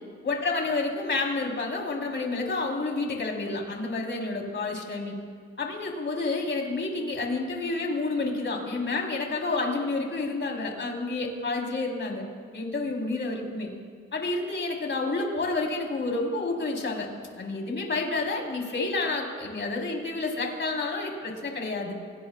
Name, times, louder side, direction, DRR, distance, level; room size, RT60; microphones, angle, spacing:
voice 1, 0.2-5.2 5.6-12.2 12.5-13.7 14.1-17.1 17.4-21.9, left 3 dB, 40° left, 0 dB, 3.7 m, -29 dB
29.0 x 18.0 x 2.4 m, 2.1 s
cardioid pair, 90°, 30 cm